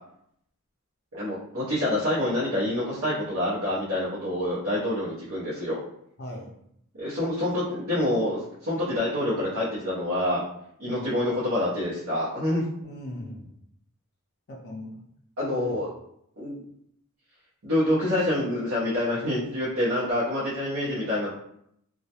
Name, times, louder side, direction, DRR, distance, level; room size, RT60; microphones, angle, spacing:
voice 1, 1.1-5.8 7.0-10.4 10.8-12.6 15.4-15.9 16.4-16.6 17.6-21.3, left 1 dB, 70° right, -9 dB, 0.7 m, -27 dB
voice 2, 6.2-6.6 10.8-11.1 12.8-13.5 14.5-14.9 15.5-15.8, left 1 dB, 45° left, -2 dB, 0.5 m, -38 dB
2.2 x 2.0 x 2.8 m, 0.73 s
head